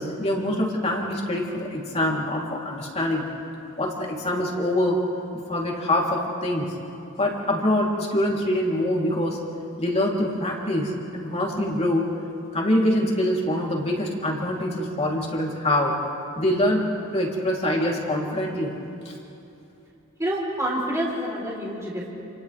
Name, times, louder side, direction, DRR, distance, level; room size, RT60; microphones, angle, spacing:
voice 1, 0.0-3.2 3.8-5.0 5.5-6.7 7.2-9.4 9.8-12.1 12.5-15.9 16.4-18.7 19.0-19.1, left 1 dB, 30° left, -2 dB, 3.4 m, -24 dB
voice 2, 20.2-22.1, right 1 dB, 15° right, -5 dB, 4.1 m, -27 dB
29.5 x 29.0 x 3.5 m, 2.8 s
head